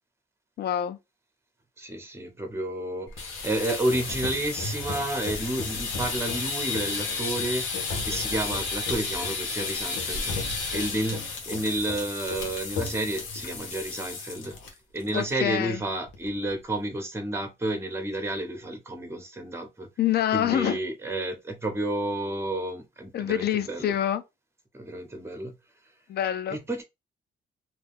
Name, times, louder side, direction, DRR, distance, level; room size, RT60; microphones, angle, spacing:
voice 1, 0.6-1.0 15.1-15.8 20.0-20.8 23.1-24.2 26.1-26.6, left 11 dB, 55° left, 0.4 m, -26 dB
voice 2, 1.8-10.3 10.7-14.5 14.9-19.9 20.3-24.0 24.7-25.5 26.5-26.8, right 1 dB, 15° right, 0.9 m, -31 dB
sound 1, 3.1-14.7 15.0-15.3 15.6-15.7 16.1-16.5, left 4 dB, 80° left, 0.9 m, -32 dB
2.6 x 2.1 x 3.4 m
cardioid pair, 90°, 20 cm